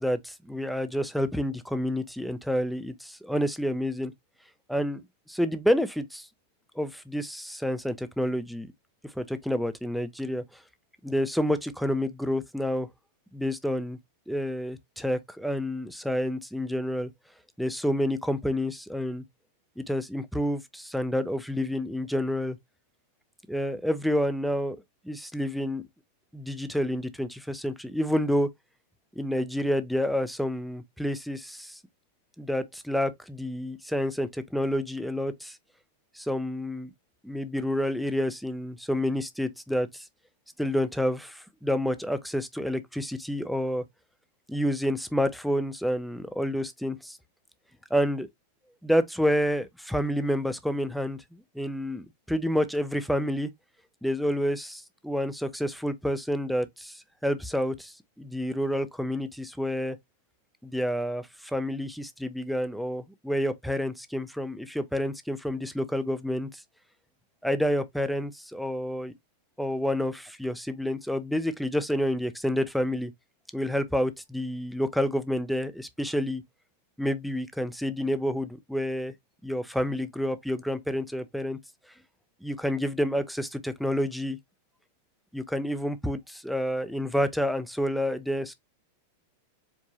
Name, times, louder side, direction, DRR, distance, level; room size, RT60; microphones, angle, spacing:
voice 1, 0.0-4.1 4.7-6.3 6.8-8.7 9.2-10.4 11.0-12.9 13.3-14.0 14.3-17.1 17.6-19.2 19.8-22.6 23.5-24.8 25.1-25.8 26.3-28.5 29.2-31.8 32.4-35.6 36.2-36.9 37.2-40.1 40.6-43.8 44.5-47.2 47.9-48.3 48.8-53.5 54.0-60.0 60.6-66.5 67.4-69.1 69.6-73.1 73.5-76.4 77.0-79.1 79.4-81.6 82.4-84.4 85.3-88.5, equal, ahead, 0.3 m, -29 dB
4.6 x 2.8 x 2.8 m
supercardioid pair, 175°, 0 cm